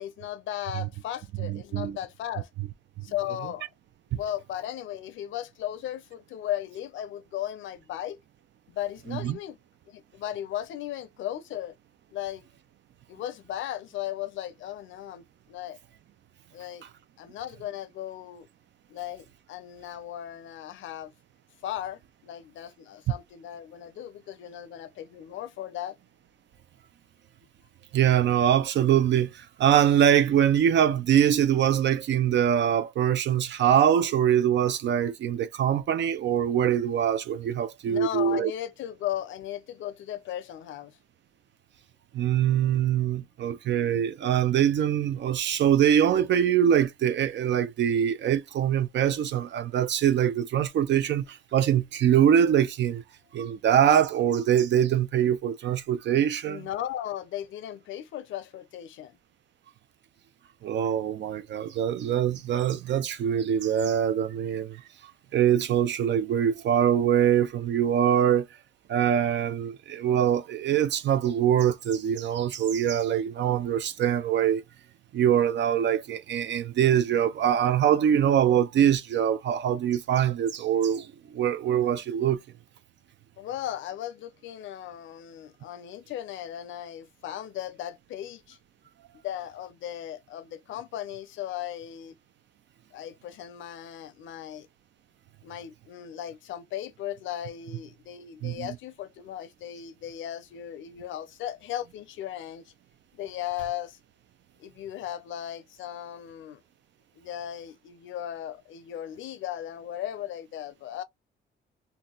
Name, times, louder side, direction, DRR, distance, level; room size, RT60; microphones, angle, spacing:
voice 1, 0.0-2.5 3.0-3.7 4.1-8.2 8.7-9.6 9.9-11.7 12.1-12.4 13.1-15.8 16.5-16.8 17.2-18.5 18.9-21.1 21.6-26.0 37.9-40.9 56.5-59.2 83.4-88.6 89.2-92.2 92.9-94.7 95.4-102.6 103.1-104.0 104.6-106.6 107.2-111.0, left 11 dB, 75° left, 0.5 m, -36 dB
voice 2, 1.4-2.0 4.1-4.2 9.1-9.4 27.9-38.5 42.1-53.0 53.3-56.7 60.6-68.5 68.9-74.6 75.1-82.4 98.4-98.8, right 9 dB, 65° right, 0.6 m, -23 dB
2.7 x 2.2 x 3.7 m
cardioid pair, 90°, 20 cm